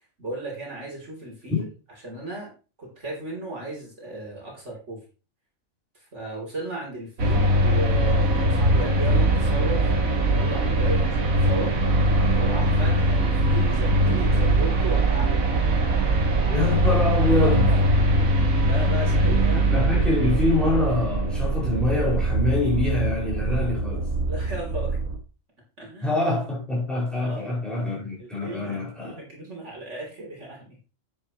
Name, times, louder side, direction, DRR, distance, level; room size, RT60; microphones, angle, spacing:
voice 1, 0.2-1.7 2.0-2.5 2.8-5.0 6.0-11.8 12.4-15.4 17.4-17.8 18.7-19.6 24.3-25.0 25.8-26.2 27.2-27.5 28.2-30.8, right 2 dB, 60° right, 3.7 m, -35 dB
sound 1, 7.2-25.2, right 1 dB, 90° right, 2.2 m, -21 dB
voice 2, 16.5-17.7 19.3-19.4 19.7-24.1 26.0-29.2, left 2 dB, ahead, 5.5 m, -25 dB
9.9 x 9.1 x 3.1 m
omnidirectional pair, 1.4 m